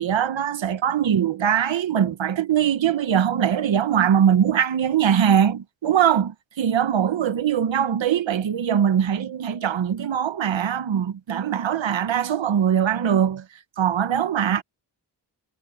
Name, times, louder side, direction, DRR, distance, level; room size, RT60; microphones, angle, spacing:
voice 1, 0.0-13.4 13.8-14.6, right 9 dB, 80° right, 1.0 m, -21 dB
wide cardioid pair, 120°, 44 cm